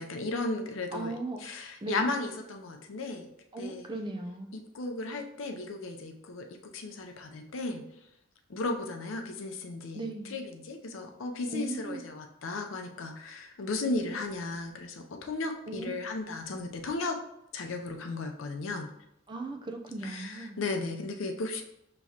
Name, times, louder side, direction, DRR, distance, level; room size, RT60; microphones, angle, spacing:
voice 1, 0.0-3.3 3.6-3.9 4.5-6.5 6.7-7.8 8.5-17.2 17.5-18.9 20.0-21.6, left 3 dB, 80° left, 4 dB, 0.6 m, -35 dB
voice 2, 0.9-1.4 1.8-2.1 3.5-4.5 9.9-10.3 11.5-12.0 15.7-16.0 19.3-20.6, right 2 dB, 25° right, 4 dB, 0.4 m, -37 dB
5.9 x 3.0 x 2.8 m, 0.83 s
head